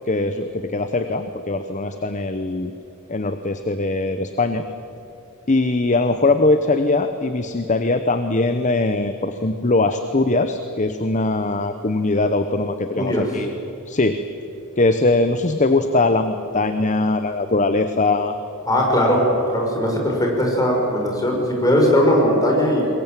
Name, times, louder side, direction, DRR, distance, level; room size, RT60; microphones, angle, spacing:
voice 1, 0.1-2.7 3.1-4.6 5.5-13.5 13.9-14.2 14.8-18.3, left 2 dB, 35° left, 9 dB, 0.9 m, -21 dB
voice 2, 18.7-19.2 19.5-22.9, equal, 15° left, -1 dB, 5.6 m, -19 dB
23.0 x 21.5 x 9.1 m, 2.9 s
head